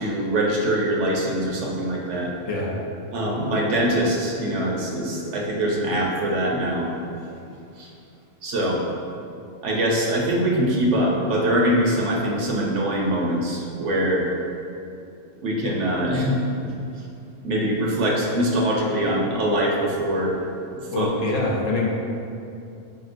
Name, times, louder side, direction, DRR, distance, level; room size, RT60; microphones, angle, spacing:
voice 1, 0.0-2.3 3.1-6.9 7.8-7.9 8.4-8.8 9.6-14.3 15.4-16.4 16.6-16.7 17.4-20.4 20.9-21.1, right 1 dB, 65° right, -2 dB, 0.8 m, -23 dB
voice 2, 20.9-21.9, left 2 dB, 70° left, -3 dB, 1.0 m, -24 dB
5.3 x 2.9 x 2.4 m, 2.7 s
omnidirectional pair, 1.4 m